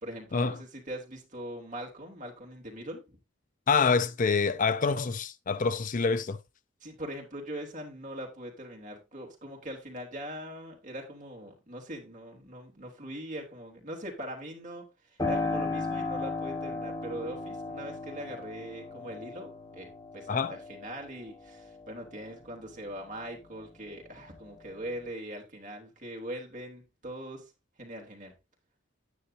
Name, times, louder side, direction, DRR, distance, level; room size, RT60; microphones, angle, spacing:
voice 1, 0.0-3.2 6.8-14.9 15.3-19.9 20.1-27.5 27.8-28.3, equal, 40° right, 3.3 m, -41 dB
voice 2, 3.7-6.4 20.3-20.5, left 5 dB, 40° left, 0.5 m, -26 dB
Piano, 15.2-23.6 24.0-25.1, left 3 dB, 20° left, 4.4 m, -37 dB
10.0 x 9.7 x 2.8 m
head